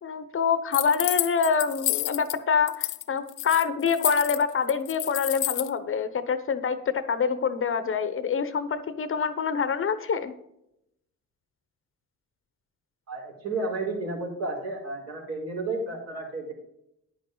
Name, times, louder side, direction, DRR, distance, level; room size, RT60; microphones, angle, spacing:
voice 1, 0.0-10.3, left 6 dB, 45° left, 12 dB, 0.9 m, -26 dB
sound 1, 0.7-2.4 2.7-3.0 3.3-5.7, left 17 dB, 90° left, 0.5 m, -29 dB
voice 2, 13.1-16.5, right 2 dB, 60° right, -1 dB, 4.4 m, -32 dB
10.0 x 9.2 x 3.9 m, 0.79 s
cardioid pair, 90°, 30 cm